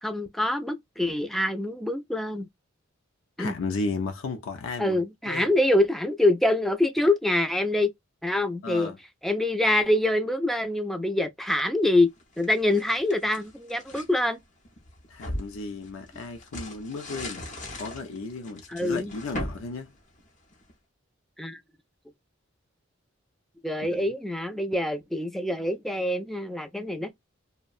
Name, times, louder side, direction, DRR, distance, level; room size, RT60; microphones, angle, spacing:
voice 1, 0.0-2.5 3.4-3.5 4.8-7.9 8.2-8.9 9.2-12.1 12.4-14.4 18.7-19.1 21.4-21.6 23.6-27.1, left 1 dB, ahead, 0.3 m, -25 dB
voice 2, 3.4-5.5 8.6-9.0 15.1-17.5 17.8-19.9 23.9-24.0, left 3 dB, 85° left, 0.4 m, -34 dB
sound 1, 12.2-14.1 14.6-20.7, left 1 dB, 35° left, 0.6 m, -39 dB
2.6 x 2.1 x 2.3 m
head